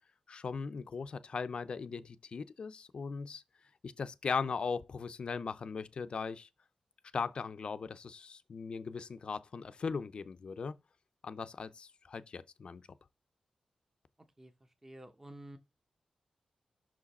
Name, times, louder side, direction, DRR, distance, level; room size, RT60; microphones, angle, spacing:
voice 1, 0.3-3.4 3.8-6.5 7.1-10.8 11.2-12.8, left 5 dB, 55° left, 0.5 m, -38 dB
voice 2, 14.2-15.6, right 1 dB, 15° right, 0.8 m, -52 dB
5.9 x 4.8 x 4.2 m
wide cardioid pair, 110°, 2 cm